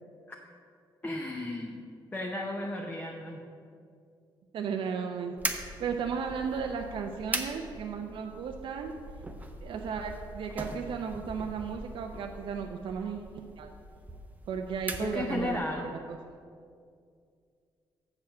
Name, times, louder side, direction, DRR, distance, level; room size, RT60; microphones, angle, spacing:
voice 1, 1.0-1.8 2.1-3.4 15.0-15.9, left 1 dB, 15° left, 1 dB, 0.7 m, -34 dB
voice 2, 4.5-5.3 5.8-8.9 9.6-13.3 13.6-13.7 14.5-15.6 16.1-16.2, right 6 dB, 65° right, 3 dB, 0.5 m, -34 dB
sound 1, 5.4-15.7, right 2 dB, 15° right, 0.7 m, -41 dB
7.4 x 4.9 x 7.1 m, 2.3 s
cardioid pair, 115°, 9 cm